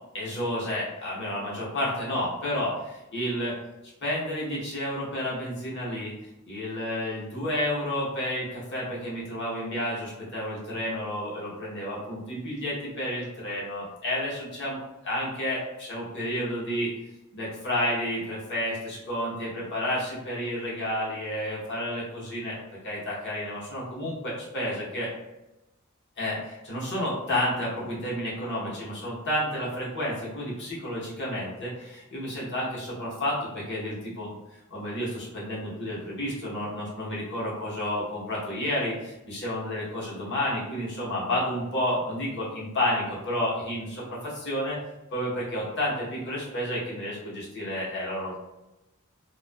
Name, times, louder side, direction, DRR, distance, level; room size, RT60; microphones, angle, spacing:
voice 1, 0.1-3.6 4.0-6.1 6.5-16.9 17.3-25.1 26.2-44.8 45.1-48.4, left 1 dB, 55° left, -5 dB, 0.9 m, -31 dB
2.5 x 2.3 x 2.3 m, 0.96 s
head